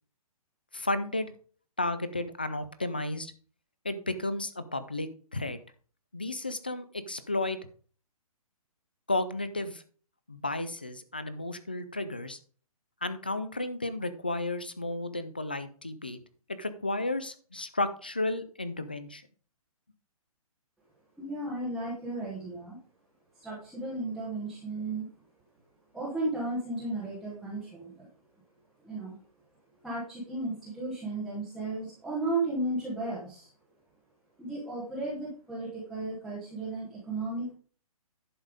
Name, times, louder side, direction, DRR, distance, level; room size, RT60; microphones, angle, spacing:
voice 1, 0.7-1.3 1.8-3.3 3.8-5.6 6.1-7.6 9.1-9.8 10.3-12.4 13.0-16.2 16.6-19.2, left 2 dB, 15° left, 12 dB, 0.3 m, -33 dB
voice 2, 21.2-22.8 23.3-25.1 25.9-28.1 28.8-29.2 29.8-33.5 34.4-37.5, right 2 dB, ahead, -9 dB, 1.1 m, -34 dB
11.0 x 5.4 x 5.0 m, 0.42 s
hypercardioid pair, 180°, 19 cm